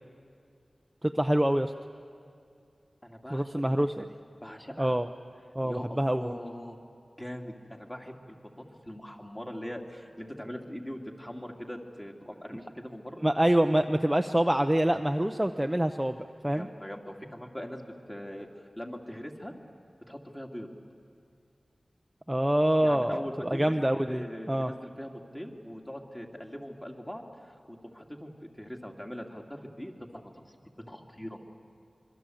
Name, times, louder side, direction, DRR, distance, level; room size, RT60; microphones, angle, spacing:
voice 1, 1.0-1.7 3.3-4.0 4.8-5.1 5.6-6.3 13.2-16.7 22.3-24.7, right 1 dB, 10° right, 6 dB, 0.7 m, -26 dB
voice 2, 3.0-4.1 4.4-5.0 5.6-6.8 7.2-13.2 16.5-18.5 18.8-19.5 20.1-20.7 22.8-23.8 24.1-30.3 30.8-31.4, equal, 15° left, 1 dB, 2.6 m, -41 dB
26.0 x 23.0 x 7.9 m, 2.4 s
wide cardioid pair, 70°, 0 cm